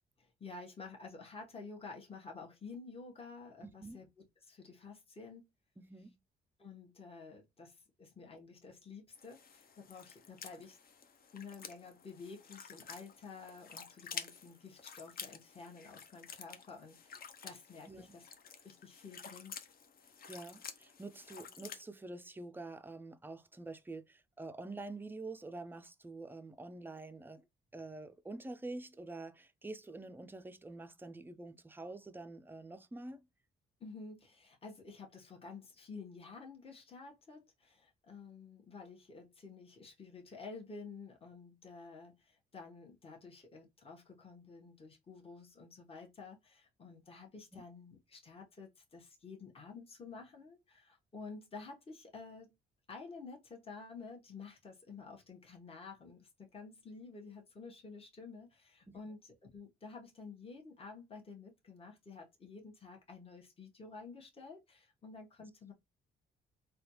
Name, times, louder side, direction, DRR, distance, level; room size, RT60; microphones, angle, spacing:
voice 1, 0.2-4.1 4.4-5.5 6.6-10.8 11.3-18.2 18.6-19.6 33.8-52.6 52.9-65.7, left 4 dB, 30° left, 1.1 m, -51 dB
voice 2, 3.6-4.0 5.8-6.2 17.9-18.1 20.3-27.4 27.7-33.2 47.5-47.6 58.9-59.0, right 2 dB, 10° right, 0.4 m, -47 dB
sound 1, 9.2-21.8, left 6 dB, 50° left, 0.6 m, -51 dB
3.4 x 2.3 x 2.9 m
cardioid pair, 90°, 20 cm